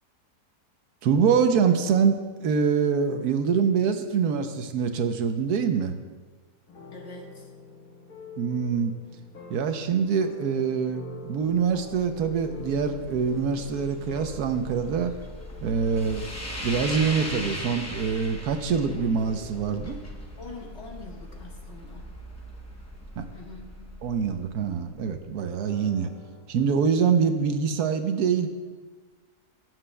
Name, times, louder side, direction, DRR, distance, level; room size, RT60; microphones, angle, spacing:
voice 1, 1.0-6.0 8.4-8.9 9.5-15.1 15.6-16.3 16.6-20.0 23.2-23.3 24.0-26.1 26.5-28.5, right 6 dB, 75° right, 7 dB, 1.2 m, -25 dB
sound 1, 6.7-26.5, left 4 dB, 65° left, 1.7 m, -48 dB
voice 2, 6.9-7.5 20.4-22.1 23.3-23.9, left 3 dB, 45° left, -1 dB, 1.6 m, -44 dB
sound 2, 11.3-25.5, left 1 dB, 20° left, 0.4 m, -39 dB
19.0 x 7.7 x 2.2 m, 1.4 s
omnidirectional pair, 1.7 m